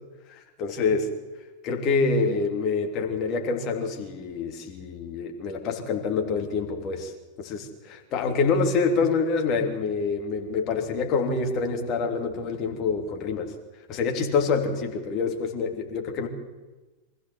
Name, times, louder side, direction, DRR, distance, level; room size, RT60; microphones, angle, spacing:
voice 1, 0.3-1.0 1.6-7.1 7.4-13.5 13.9-16.3, left 4 dB, 35° left, 3 dB, 3.3 m, -26 dB
24.5 x 14.5 x 8.1 m, 1.2 s
figure-of-eight pair, 90°, 0 cm